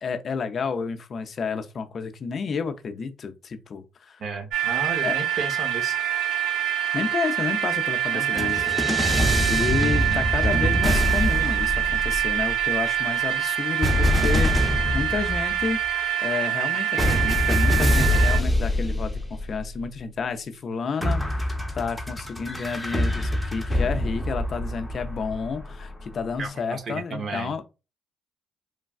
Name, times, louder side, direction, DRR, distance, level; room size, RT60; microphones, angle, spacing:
voice 1, 0.0-4.2 5.0-5.2 6.9-8.7 9.0-15.8 16.2-27.6, left 5 dB, 50° left, 0.5 m, -31 dB
voice 2, 4.2-6.0 8.1-8.6 26.4-27.6, right 3 dB, 55° right, 0.9 m, -33 dB
sound 1, 4.5-18.4, right 11 dB, 75° right, 1.3 m, -25 dB
sound 2, 8.4-12.6 13.8-15.7 17.0-19.8 21.0-26.0, equal, 10° left, 0.7 m, -24 dB
3.2 x 2.2 x 2.4 m
supercardioid pair, 70°, 0 cm